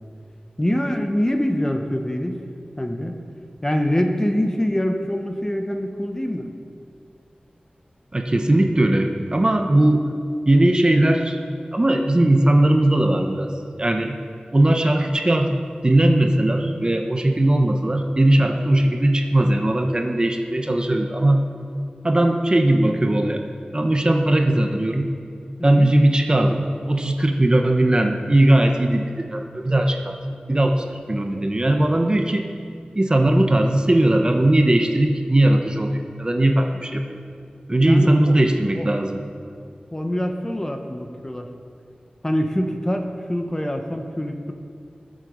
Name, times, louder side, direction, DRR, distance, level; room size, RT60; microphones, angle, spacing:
voice 1, 0.6-2.4 2.8-3.2 3.6-6.5 25.6-25.9 37.8-38.3 38.8-38.9 39.9-41.5 42.2-44.5, equal, 20° left, 4 dB, 1.2 m, -24 dB
voice 2, 8.1-10.0 10.5-11.4 11.7-13.5 13.8-14.2 14.5-21.4 22.0-23.4 23.7-25.1 25.6-30.2 30.5-32.5 33.0-37.2 37.7-39.2, right 1 dB, 30° right, 4 dB, 1.0 m, -19 dB
20.0 x 7.6 x 5.4 m, 2.3 s
wide cardioid pair, 70°, 3 cm